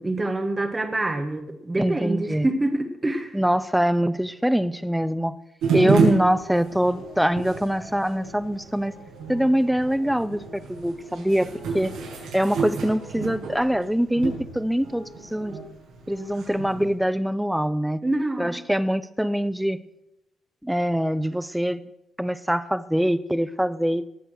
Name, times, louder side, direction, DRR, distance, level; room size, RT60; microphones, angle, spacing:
voice 1, 0.0-3.4 5.8-6.2 18.0-18.6, right 2 dB, 20° right, 7 dB, 1.5 m, -26 dB
voice 2, 1.8-2.5 3.3-5.4 5.7-8.9 9.3-11.5 11.7-11.9 12.3-15.6 16.1-18.0 18.4-19.8 20.6-21.8 22.2-24.1, equal, 5° right, 16 dB, 0.6 m, -24 dB
sound 1, 5.6-16.9, right 5 dB, 85° right, 5.6 m, -30 dB
19.0 x 6.9 x 6.4 m, 0.88 s
cardioid pair, 90°, 0 cm